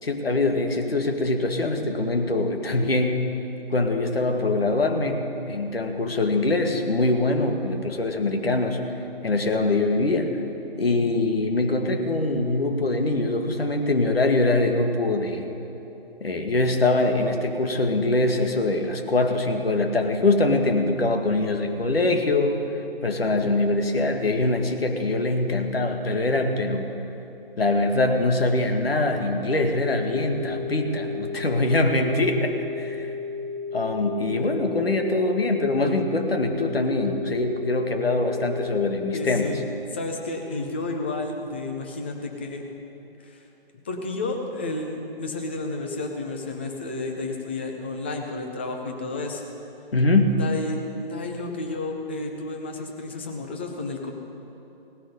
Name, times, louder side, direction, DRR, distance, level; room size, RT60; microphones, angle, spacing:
voice 1, 0.0-3.2 3.7-8.8 9.2-10.4 10.8-15.4 16.2-22.6 23.0-26.9 27.6-33.1 33.7-39.5 49.9-50.3, left 2 dB, 75° left, 4 dB, 1.7 m, -23 dB
sound 1, 29.7-39.7, left 4 dB, 25° left, 0.9 m, -33 dB
voice 2, 39.1-39.6 39.9-42.6 43.2-43.4 43.8-49.4 50.4-54.1, left 2 dB, 10° left, 3 dB, 0.5 m, -31 dB
17.5 x 10.0 x 5.5 m, 3.0 s
figure-of-eight pair, 150°, 30 cm